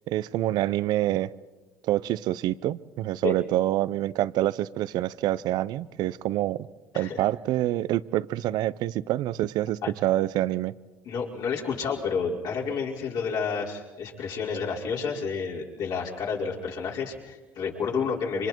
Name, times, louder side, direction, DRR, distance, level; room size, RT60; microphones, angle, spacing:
voice 1, 0.1-1.3 1.8-6.7 6.9-10.7, right 14 dB, 65° right, 18 dB, 0.7 m, -26 dB
voice 2, 11.0-18.5, left 5 dB, 60° left, -2 dB, 5.6 m, -30 dB
28.0 x 25.5 x 4.6 m, 1.2 s
supercardioid pair, 80°, 8 cm